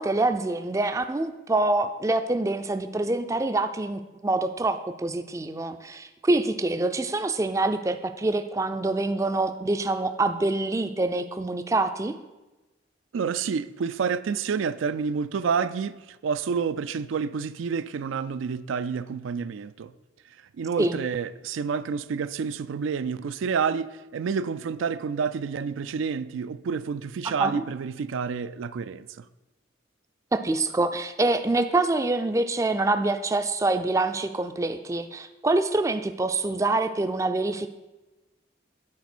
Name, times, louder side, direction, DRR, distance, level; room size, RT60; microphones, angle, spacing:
voice 1, 0.0-12.2 20.8-21.0 27.2-27.6 30.3-37.7, right 2 dB, 15° right, 0.3 m, -25 dB
voice 2, 13.1-19.9 20.6-29.2, right 6 dB, 90° right, 0.4 m, -29 dB
9.7 x 4.4 x 6.0 m
head